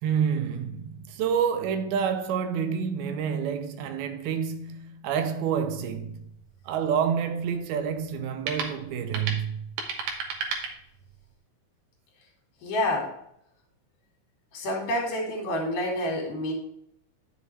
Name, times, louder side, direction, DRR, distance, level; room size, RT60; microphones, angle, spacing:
voice 1, 0.0-6.3 6.7-9.7, right 7 dB, 85° right, 2.5 m, -28 dB
sound 1, 6.0-11.3, right 5 dB, 65° right, 2.2 m, -36 dB
voice 2, 12.6-13.1 14.5-16.5, left 1 dB, 60° left, 3.9 m, -28 dB
9.9 x 7.3 x 3.2 m
omnidirectional pair, 4.5 m